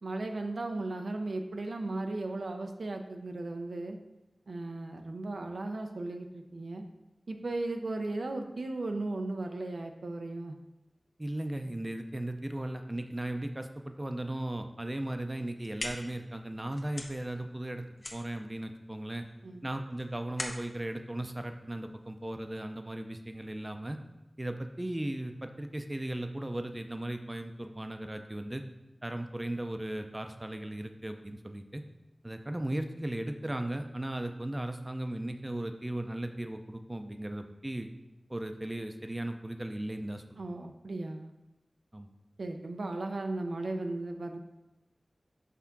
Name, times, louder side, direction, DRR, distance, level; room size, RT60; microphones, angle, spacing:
voice 1, 0.0-4.0 4.5-6.9 7.3-10.5 19.4-19.6 40.4-41.3 42.4-44.4, right 2 dB, 90° right, 5 dB, 0.5 m, -36 dB
voice 2, 11.2-17.8 18.1-19.3 19.6-24.0 24.4-28.6 29.0-31.8 32.2-37.9 38.3-40.4 41.9-42.1, right 1 dB, 25° right, 6 dB, 0.5 m, -37 dB
sound 1, 15.4-22.2, left 2 dB, 65° left, 0.8 m, -44 dB
5.8 x 3.6 x 5.8 m, 1.0 s
wide cardioid pair, 65°, 0 cm